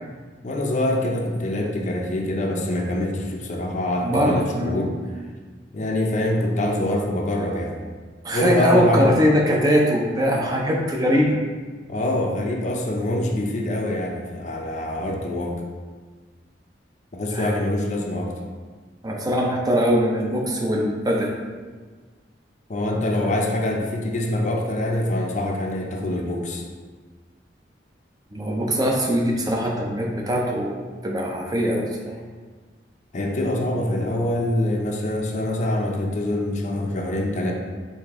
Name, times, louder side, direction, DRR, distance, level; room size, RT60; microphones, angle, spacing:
voice 1, 0.4-5.0 5.7-7.8 8.3-9.1 11.9-15.6 17.1-18.3 22.7-26.6 33.1-37.5, left 1 dB, 45° left, 1 dB, 0.5 m, -25 dB
voice 2, 4.0-4.8 8.2-11.4 17.3-17.5 19.0-21.3 22.9-23.3 28.3-32.2, equal, 20° right, -1 dB, 0.5 m, -22 dB
4.9 x 2.7 x 3.5 m, 1.4 s
head